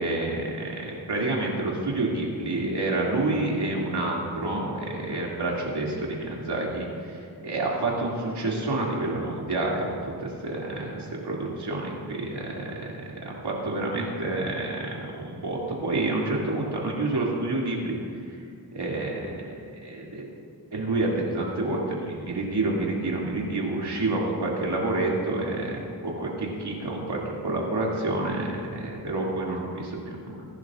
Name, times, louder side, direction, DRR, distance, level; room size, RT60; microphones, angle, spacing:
voice 1, 0.0-7.2 7.4-10.1 10.4-12.8 13.2-17.9 18.7-20.2 20.7-30.5, right 2 dB, 85° right, -3 dB, 2.6 m, -28 dB
22.0 x 11.0 x 2.5 m, 2.5 s
wide cardioid pair, 75°, 39 cm